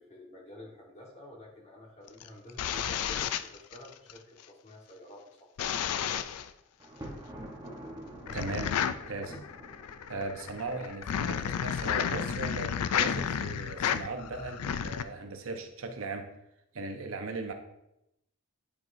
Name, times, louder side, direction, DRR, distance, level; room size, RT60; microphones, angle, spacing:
voice 1, 0.0-3.3 3.5-6.4, left 1 dB, 30° left, -2 dB, 1.4 m, -50 dB
sound 1, 2.1-4.2 5.6-6.5 8.3-15.0, left 8 dB, 90° left, 0.4 m, -32 dB
Thunder, 6.8-10.9, right 1 dB, 15° right, 1.0 m, -46 dB
voice 2, 8.3-8.7 9.1-9.4 10.1-16.3 16.7-17.5, right 3 dB, 65° right, 5 dB, 0.7 m, -38 dB
10.0 x 4.5 x 2.7 m, 0.85 s
head